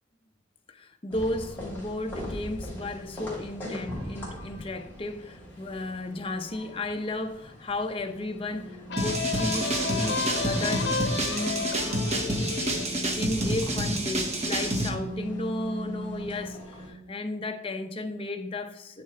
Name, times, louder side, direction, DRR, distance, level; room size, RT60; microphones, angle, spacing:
voice 1, 0.7-12.8 13.1-19.0, left 2 dB, 30° left, 0.6 m, -34 dB
sound 1, 1.1-16.9, equal, 10° left, 3.2 m, -41 dB
sound 2, 8.9-14.3, left 4 dB, 65° left, 1.0 m, -33 dB
sound 3, 9.0-14.9, right 1 dB, 35° right, 0.9 m, -28 dB
9.1 x 6.8 x 3.4 m
head